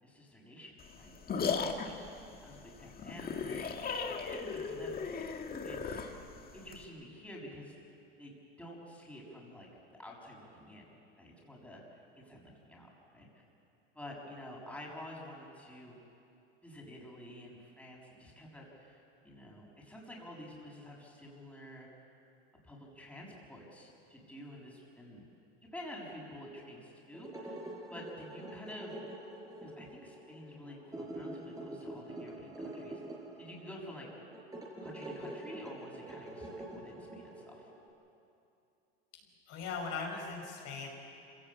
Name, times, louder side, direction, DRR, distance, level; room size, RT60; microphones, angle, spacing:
voice 1, 0.0-5.3 5.6-6.1 6.5-7.7 8.2-8.3 8.6-13.3 13.9-16.0 16.6-21.9 22.6-25.2 25.7-27.6 27.9-29.0 29.6-33.0 33.4-34.1 34.8-37.7, left 1 dB, 5° left, -3 dB, 6.6 m, -49 dB
sound 1, 0.8-6.8, left 5 dB, 30° left, 2.0 m, -37 dB
sound 2, 27.1-37.9, right 1 dB, 10° right, 5.3 m, -46 dB
voice 2, 39.5-40.9, left 4 dB, 55° left, -1 dB, 5.6 m, -39 dB
26.0 x 17.0 x 8.7 m, 2.7 s
hypercardioid pair, 100°, 31 cm